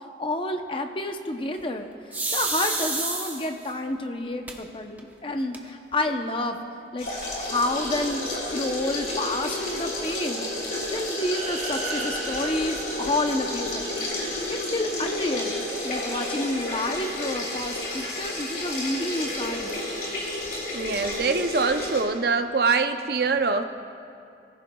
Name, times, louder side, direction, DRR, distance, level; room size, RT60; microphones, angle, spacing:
voice 1, 0.2-1.9 2.3-6.6 6.9-7.1 7.4-14.0 14.5-15.6 15.8-19.9, left 1 dB, 30° left, 5 dB, 0.7 m, -29 dB
sound 1, 2.1-3.7 4.5-4.6 5.0-5.1 5.3-5.9, right 3 dB, 10° right, 0.8 m, -29 dB
sound 2, 7.0-22.0, left 1 dB, 55° left, 3.6 m, -31 dB
sound 3, 11.1-14.0, right 4 dB, 40° right, 0.9 m, -37 dB
voice 2, 20.7-23.6, right 4 dB, 55° right, 8 dB, 0.5 m, -24 dB
22.5 x 15.0 x 2.3 m, 2.5 s
head